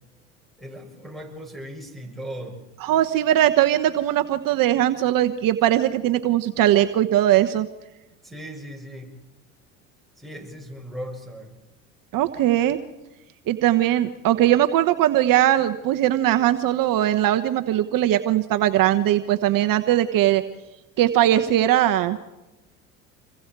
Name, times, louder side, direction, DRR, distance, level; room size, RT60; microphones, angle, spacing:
voice 1, 0.6-2.6 8.2-9.2 10.2-11.6, equal, ahead, 4 dB, 7.1 m, -37 dB
voice 2, 2.8-7.7 12.1-12.8 13.5-20.4 21.0-22.2, right 13 dB, 55° right, 9 dB, 1.2 m, -20 dB
27.5 x 23.0 x 4.7 m, 1.1 s
hypercardioid pair, 75°, 40 cm